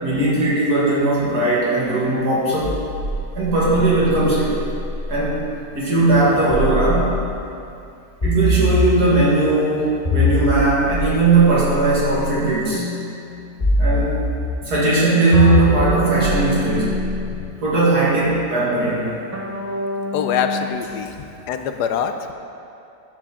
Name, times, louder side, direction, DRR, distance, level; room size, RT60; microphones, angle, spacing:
voice 1, 0.0-2.8 3.3-4.5 5.1-5.4 5.8-7.1 8.2-12.8 13.8-14.1 14.7-16.9 17.6-19.1, right 2 dB, 70° right, -7 dB, 2.3 m, -18 dB
sound 1, 2.6-5.4 6.5-7.5 8.2-9.3 10.0-12.3 13.6-14.7 15.3-17.5, left 1 dB, 30° left, 2.7 m, -23 dB
sound 2, 12.7-13.7 15.3-17.6 19.3-20.7, left 1 dB, 20° right, 0.5 m, -28 dB
voice 2, 17.2-17.6 20.1-21.1 21.5-22.3, left 7 dB, 80° left, 7 dB, 1.1 m, -25 dB
11.0 x 7.3 x 3.6 m, 2.6 s
omnidirectional pair, 1.8 m